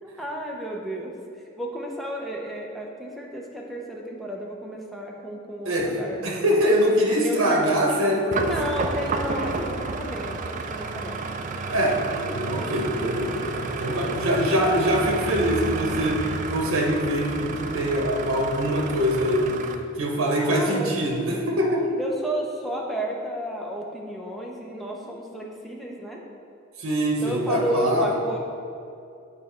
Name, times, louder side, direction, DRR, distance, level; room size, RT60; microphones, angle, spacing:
voice 1, 0.0-6.2 7.2-7.5 8.5-11.2 13.8-14.5 15.0-15.2 20.4-20.9 22.0-26.2 27.2-28.4, equal, ahead, -2 dB, 0.6 m, -32 dB
voice 2, 5.6-8.5 9.6-9.7 11.7-19.6 20.0-21.9 26.8-28.1, equal, 80° right, 0 dB, 0.9 m, -23 dB
sound 1, 8.3-19.7, right 3 dB, 35° right, 0.3 m, -31 dB
7.9 x 4.1 x 4.3 m, 2.5 s
head